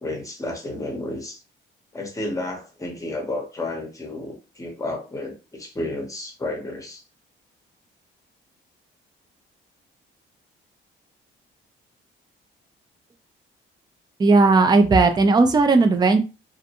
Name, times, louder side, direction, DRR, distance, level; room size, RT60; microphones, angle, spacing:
voice 1, 0.0-1.4 1.9-7.0, left 2 dB, 15° left, 2 dB, 0.9 m, -31 dB
voice 2, 14.2-16.2, right 3 dB, 20° right, 7 dB, 0.4 m, -16 dB
2.5 x 2.1 x 2.8 m, 0.30 s
cardioid pair, 90°, 20 cm